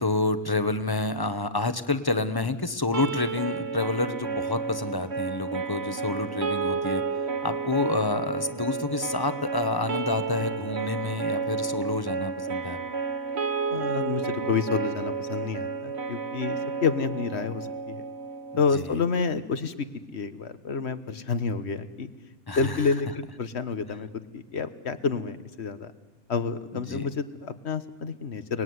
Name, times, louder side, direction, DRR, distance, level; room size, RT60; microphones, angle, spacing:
voice 1, 0.0-7.0 7.4-12.8 18.7-18.8 22.5-22.8 26.7-27.1, left 3 dB, 20° left, 10 dB, 1.2 m, -28 dB
sound 1, 2.9-19.0, right 5 dB, 60° right, 1.5 m, -31 dB
voice 2, 13.7-18.0 18.6-19.9 20.1-22.1 22.6-24.1 24.3-25.9 26.3-28.6, left 5 dB, 65° left, 11 dB, 1.6 m, -29 dB
30.0 x 20.0 x 9.6 m, 1.4 s
omnidirectional pair, 1.2 m